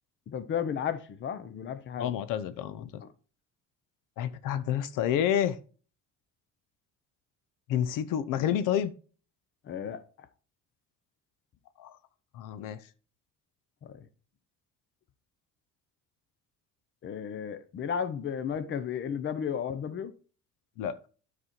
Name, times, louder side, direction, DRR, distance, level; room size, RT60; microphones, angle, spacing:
voice 1, 0.3-2.1 3.0-3.1 9.6-10.0 13.8-14.0 17.0-20.1, left 8 dB, 40° left, 0.7 m, -33 dB
voice 2, 2.0-3.0 4.2-5.6 7.7-8.9 11.8-12.0 12.3-12.8 20.8-21.0, left 10 dB, 85° left, 0.7 m, -29 dB
9.5 x 4.3 x 4.4 m
cardioid pair, 150°, 32 cm